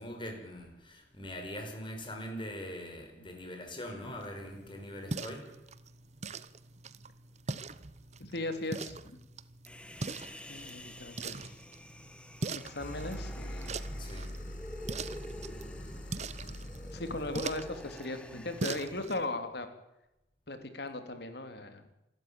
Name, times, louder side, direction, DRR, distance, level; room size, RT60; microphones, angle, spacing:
voice 1, 0.0-5.5 14.0-14.3, equal, 30° left, 3 dB, 5.5 m, -42 dB
sound 1, 4.0-19.3, right 3 dB, 40° right, 0.8 m, -42 dB
voice 2, 8.2-9.2 10.5-11.6 12.5-13.8 16.9-19.7 20.5-21.8, left 2 dB, 65° left, 8 dB, 2.9 m, -38 dB
Human voice, 9.7-19.1, equal, 5° left, 1.2 m, -49 dB
sound 2, 12.8-18.0, equal, 45° left, 1.7 m, -43 dB
27.0 x 12.5 x 9.0 m, 0.92 s
head